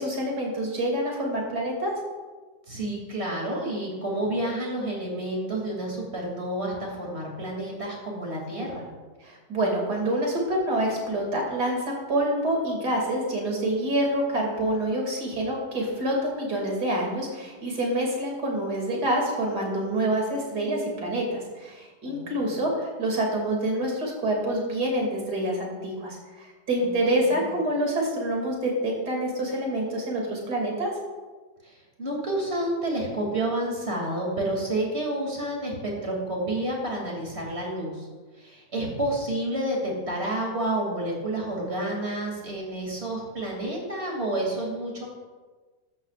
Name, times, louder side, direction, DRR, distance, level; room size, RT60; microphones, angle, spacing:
voice 1, 0.0-1.9 9.2-30.9, right 1 dB, 70° right, -1 dB, 3.2 m, -27 dB
voice 2, 2.7-8.9 22.0-22.6 26.8-26.9 27.2-27.6 31.6-38.1 38.4-45.1, right 1 dB, 40° right, -1 dB, 3.0 m, -30 dB
14.0 x 12.0 x 2.5 m, 1.4 s
omnidirectional pair, 1.8 m